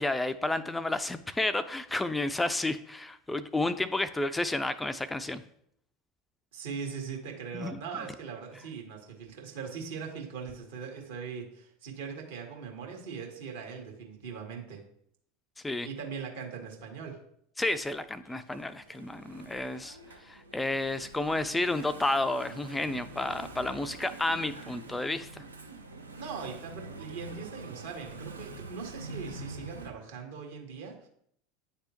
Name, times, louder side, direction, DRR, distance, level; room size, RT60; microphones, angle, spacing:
voice 1, 0.0-5.4 7.5-7.8 15.6-15.9 17.6-20.0 20.2-25.4, left 2 dB, 10° left, 12 dB, 0.3 m, -31 dB
voice 2, 6.5-14.8 15.8-17.2 26.2-31.1, right 6 dB, 70° right, 1 dB, 1.6 m, -40 dB
Engine / Mechanisms, 17.7-29.9, right 2 dB, 90° right, 0.7 m, -46 dB
9.7 x 3.3 x 2.9 m, 0.69 s
figure-of-eight pair, 80°, 0 cm